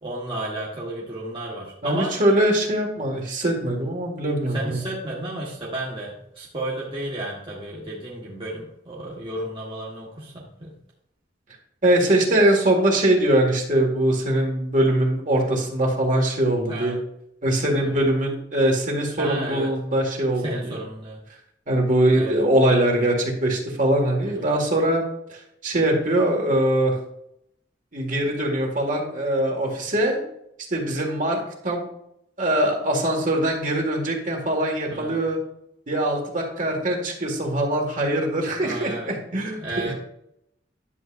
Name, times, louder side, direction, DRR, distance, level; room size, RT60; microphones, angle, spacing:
voice 1, 0.0-2.1 4.5-10.7 16.7-17.0 17.8-17.9 19.2-19.7 20.4-21.2 22.1-22.3 34.9-35.2 38.6-39.1 39.6-39.9, right 1 dB, 30° right, -5 dB, 1.4 m, -32 dB
voice 2, 1.8-4.8 11.8-17.0 17.4-20.8 21.7-25.0 25.3-26.9 27.9-30.2 30.7-31.9 32.4-35.4 35.9-39.9, right 1 dB, 45° right, 1 dB, 1.8 m, -22 dB
11.0 x 7.3 x 2.5 m, 0.77 s
head